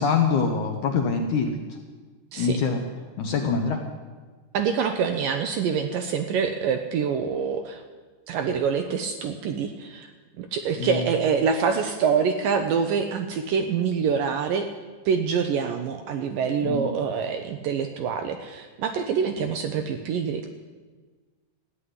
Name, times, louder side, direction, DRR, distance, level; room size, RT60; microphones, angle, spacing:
voice 1, 0.0-1.5 2.4-2.8 3.2-3.8 10.8-11.0 16.6-16.9, left 5 dB, 70° left, 3 dB, 2.0 m, -24 dB
voice 2, 4.5-7.8 8.3-10.1 10.4-14.7 15.1-20.4, right 6 dB, 75° right, 6 dB, 2.1 m, -25 dB
14.5 x 9.6 x 9.6 m, 1.4 s
omnidirectional pair, 4.7 m